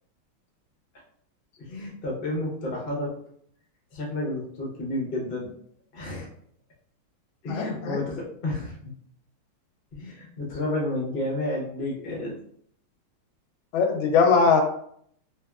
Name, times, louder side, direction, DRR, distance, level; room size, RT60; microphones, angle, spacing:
voice 1, 1.6-3.1 3.9-5.5 5.9-6.3 7.4-8.9 9.9-12.3, left 1 dB, 60° left, -2 dB, 0.5 m, -31 dB
voice 2, 7.5-8.1 13.7-14.6, left 5 dB, 75° left, 4 dB, 1.3 m, -21 dB
3.5 x 2.8 x 2.3 m, 0.66 s
omnidirectional pair, 2.4 m